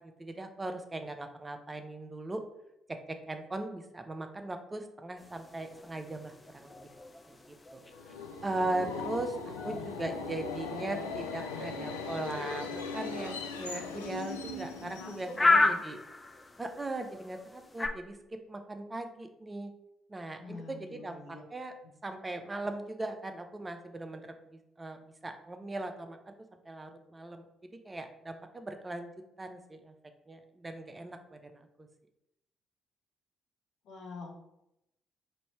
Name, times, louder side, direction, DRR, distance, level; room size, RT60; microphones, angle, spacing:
voice 1, 0.0-2.4 3.1-6.8 7.3-7.4 7.7-7.8 8.4-16.0 16.6-19.7 20.1-21.2 21.5-21.7 22.0-24.3 24.8-26.2 26.7-27.4 27.8-29.1 29.4-29.9 30.3-31.6, right 2 dB, 25° right, 6 dB, 0.5 m, -39 dB
sound 1, 5.2-17.9, left 3 dB, 25° left, 0.5 m, -35 dB
Subway metro underground, 7.9-15.6, left 4 dB, 90° left, 0.3 m, -39 dB
voice 2, 14.7-15.9 20.4-21.4 33.8-34.4, left 3 dB, 65° left, 2 dB, 0.8 m, -46 dB
3.2 x 2.7 x 4.3 m, 0.84 s
hypercardioid pair, 45°, 0 cm